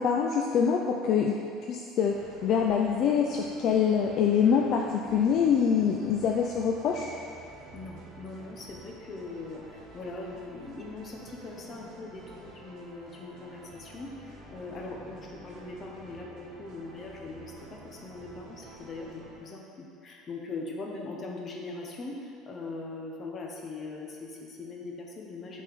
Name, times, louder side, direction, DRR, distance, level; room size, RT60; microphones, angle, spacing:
voice 1, 0.0-1.4 1.7-2.1 2.4-7.1, left 7 dB, 50° left, 0 dB, 0.4 m, -25 dB
sound 1, 2.1-19.4, right 2 dB, 55° right, 1.4 m, -49 dB
voice 2, 7.7-25.6, left 3 dB, 30° left, 0 dB, 0.9 m, -41 dB
8.1 x 4.3 x 3.6 m, 2.4 s
cardioid pair, 140°, 0 cm